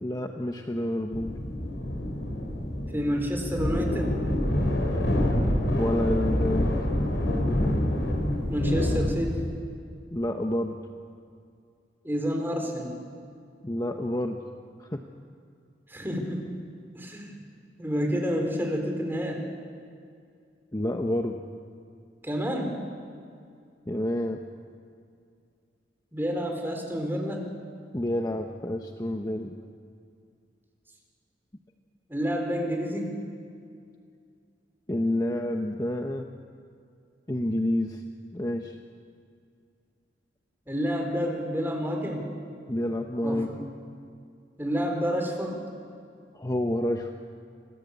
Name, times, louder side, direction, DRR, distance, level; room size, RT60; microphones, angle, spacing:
voice 1, 0.0-1.4 5.7-6.7 7.5-7.7 10.1-10.8 13.6-14.4 14.8-15.0 20.7-21.4 23.9-24.4 27.9-29.6 34.9-36.3 37.3-38.0 38.3-38.7 42.7-43.5 46.3-47.1, left 1 dB, 20° left, 4 dB, 1.0 m, -29 dB
sound 1, 1.1-9.5, left 1 dB, 90° left, 5.1 m, -27 dB
voice 2, 2.9-4.2 8.5-9.4 12.0-12.9 15.9-16.4 16.9-17.4 17.8-19.4 22.2-22.8 26.1-27.4 32.1-33.1 40.7-42.4 43.2-43.6 44.6-45.6, equal, 10° right, 2 dB, 4.4 m, -29 dB
27.0 x 19.0 x 8.4 m, 2.3 s
head